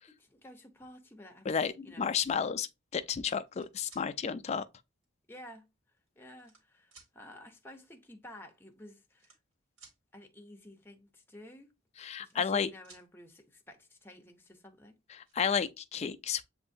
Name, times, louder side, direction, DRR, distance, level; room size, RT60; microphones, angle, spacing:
voice 1, 0.1-2.1 5.3-5.7 6.2-9.3 10.1-11.7 12.2-15.0, left 1 dB, 10° left, 0.7 m, -52 dB
voice 2, 1.5-4.7 12.0-12.7 15.1-16.4, left 7 dB, 35° left, 0.3 m, -32 dB
sound 1, 3.5-4.1 5.0-5.1 6.0-6.6 6.9-7.1 8.3-8.4 8.5-8.7 9.1-10.0 11.9-12.6 12.8-13.1 14.5-14.6 14.9-15.3, right 4 dB, 85° right, 1.8 m, -58 dB
7.3 x 2.6 x 2.6 m
head